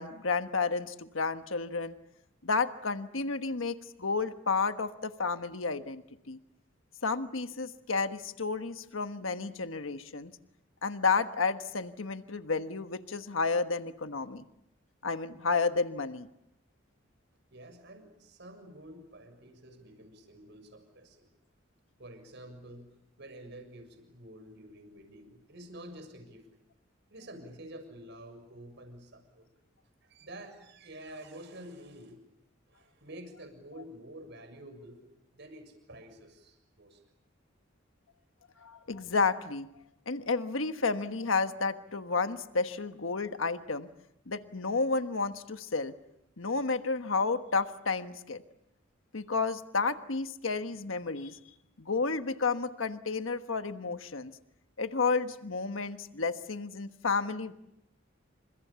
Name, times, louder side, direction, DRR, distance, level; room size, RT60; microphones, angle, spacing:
voice 1, 0.0-1.9 2.4-6.4 7.0-10.3 10.8-14.4 15.0-16.3 38.6-39.7 40.1-43.9 44.3-45.9 46.4-48.4 49.1-51.4 51.8-54.3 54.8-57.5, left 4 dB, 85° left, 8 dB, 1.3 m, -31 dB
voice 2, 17.5-21.3 22.0-26.5 27.1-29.5 30.0-32.2 32.7-35.0 35.3-37.0, right 1 dB, 60° right, 7 dB, 7.0 m, -49 dB
29.5 x 27.0 x 7.1 m, 0.82 s
head